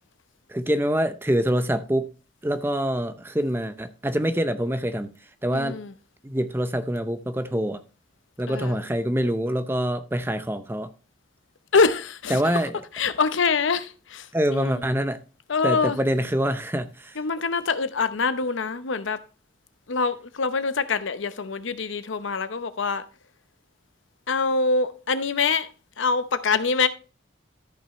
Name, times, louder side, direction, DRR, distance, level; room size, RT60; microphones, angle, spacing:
voice 1, 0.5-2.1 2.4-5.1 5.4-5.8 6.2-7.8 8.4-10.9 12.3-12.8 14.3-15.2 15.6-17.2, equal, 10° right, 0.6 m, -25 dB
voice 2, 5.5-5.9 8.5-8.8 11.7-12.6 12.9-14.8 15.5-16.0 17.2-19.2 19.9-23.1 24.3-26.9, left 4 dB, 90° left, 0.8 m, -25 dB
13.5 x 5.6 x 3.0 m
head